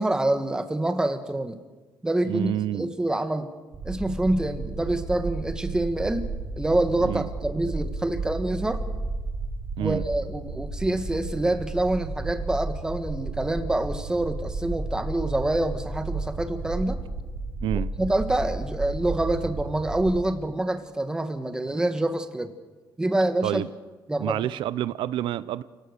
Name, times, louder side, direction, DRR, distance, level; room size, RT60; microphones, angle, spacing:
voice 1, 0.0-1.6 2.0-3.5 3.8-8.8 9.8-17.0 18.0-22.5 23.0-23.6 24.1-24.5, right 1 dB, 10° right, 8 dB, 1.5 m, -26 dB
voice 2, 2.3-2.9 7.0-7.3 9.8-10.0 17.6-17.9 23.4-23.7 24.2-25.6, right 13 dB, 80° right, 16 dB, 0.7 m, -28 dB
sound 1, 3.7-20.2, right 3 dB, 30° right, 4.4 m, -33 dB
29.0 x 18.0 x 6.7 m, 1.3 s
cardioid pair, 160°, 8 cm